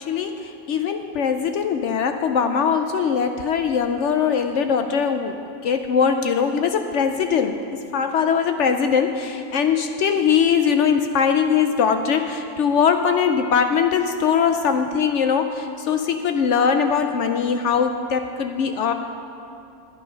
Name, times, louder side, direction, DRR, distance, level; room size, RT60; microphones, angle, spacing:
voice 1, 0.0-5.4 5.6-18.9, left 6 dB, 65° left, 6 dB, 0.8 m, -21 dB
11.5 x 8.4 x 5.6 m, 2.6 s
omnidirectional pair, 1.5 m